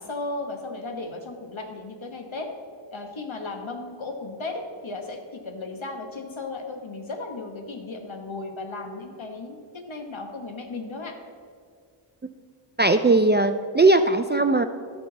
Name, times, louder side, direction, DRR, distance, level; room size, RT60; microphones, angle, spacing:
voice 1, 0.0-2.5 2.9-11.1, left 3 dB, 70° left, 4 dB, 1.2 m, -35 dB
voice 2, 12.8-14.7, right 2 dB, 25° right, 8 dB, 0.3 m, -19 dB
15.0 x 6.0 x 3.9 m, 2.1 s
wide cardioid pair, 50°, 49 cm